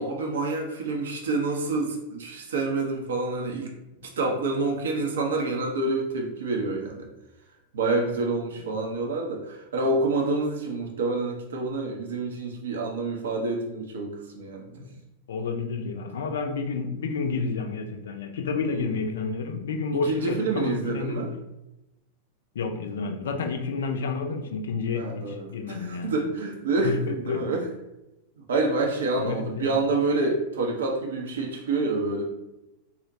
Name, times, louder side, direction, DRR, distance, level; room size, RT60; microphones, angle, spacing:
voice 1, 0.0-3.7 4.2-7.1 7.7-14.8 18.7-18.9 19.9-21.3 24.9-27.7 28.4-32.2, right 3 dB, 65° right, 1 dB, 0.5 m, -27 dB
voice 2, 15.3-21.3 22.6-26.1 26.8-27.4 29.2-29.8, left 4 dB, 65° left, 5 dB, 0.4 m, -30 dB
4.1 x 2.1 x 2.6 m, 0.96 s
figure-of-eight pair, 90°, 0 cm